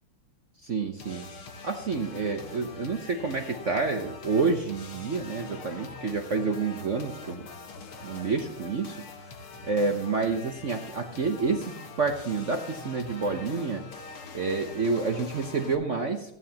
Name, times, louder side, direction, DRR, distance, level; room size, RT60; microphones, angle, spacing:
voice 1, 0.6-1.3 1.6-7.4 8.0-9.0 9.6-13.8 14.3-16.4, right 4 dB, 55° right, 4 dB, 0.9 m, -29 dB
sound 1, 1.0-15.8, left 3 dB, 75° left, 2.2 m, -43 dB
15.0 x 9.3 x 2.9 m, 0.80 s
omnidirectional pair, 2.4 m